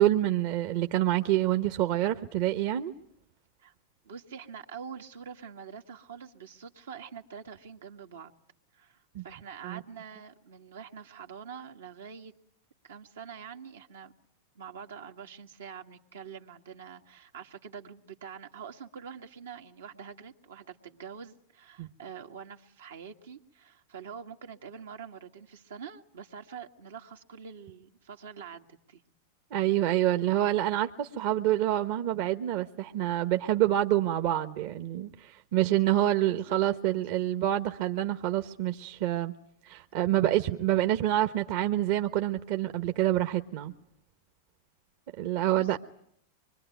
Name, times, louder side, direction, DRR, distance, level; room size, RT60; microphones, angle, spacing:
voice 1, 0.0-2.9 9.1-9.2 9.6-9.8 21.8-21.9 29.5-39.3 39.6-43.7 45.2-45.8, right 13 dB, 60° right, 8 dB, 1.2 m, -27 dB
voice 2, 4.0-8.3 8.7-12.3 12.8-14.1 14.6-29.0 36.2-36.6 45.5-45.8, right 7 dB, 85° right, 3 dB, 1.8 m, -45 dB
25.0 x 23.0 x 9.3 m, 0.71 s
hypercardioid pair, 110°, 0 cm